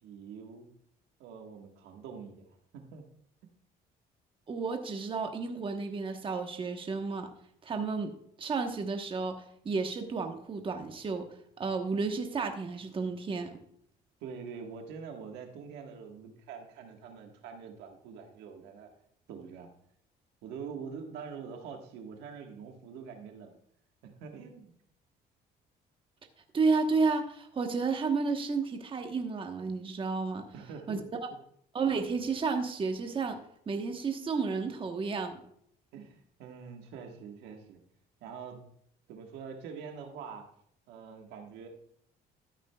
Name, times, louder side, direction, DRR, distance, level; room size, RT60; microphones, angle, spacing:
voice 1, 0.0-0.7 1.2-3.0 14.2-18.9 19.3-19.7 20.4-23.5 24.0-24.7 30.5-31.0 31.3-31.4 35.9-37.8 38.2-38.6 39.1-40.5 40.9-41.7, right 6 dB, 90° right, 3 dB, 1.5 m, -45 dB
voice 2, 4.5-7.3 7.6-8.1 8.4-11.3 11.6-13.6 26.5-30.5 30.9-31.0 31.7-33.4 33.7-35.3, right 4 dB, 30° right, 5 dB, 1.1 m, -31 dB
13.0 x 8.8 x 2.3 m, 0.69 s
cardioid pair, 110°, 17 cm